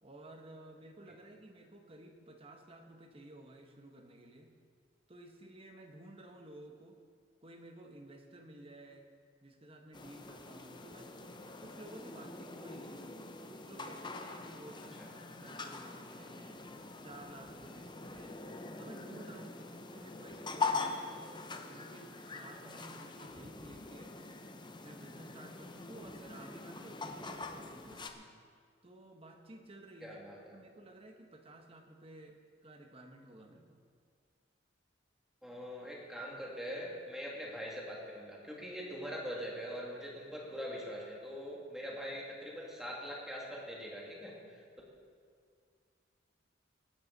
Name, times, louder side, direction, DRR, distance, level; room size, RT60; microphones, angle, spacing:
voice 1, 0.0-4.5 5.1-7.0 7.4-9.1 9.4-13.0 13.5-16.6 17.0-18.4 18.8-21.3 21.7-24.2 24.8-28.3 28.8-30.2 30.5-32.4 32.6-33.8, right 1 dB, 30° right, 4 dB, 1.2 m, -54 dB
sound 1, 9.9-28.1, left 3 dB, 25° left, 0.7 m, -43 dB
voice 2, 30.0-30.6 35.4-44.6, equal, ahead, -4 dB, 2.5 m, -43 dB
19.0 x 11.5 x 4.1 m, 2.1 s
head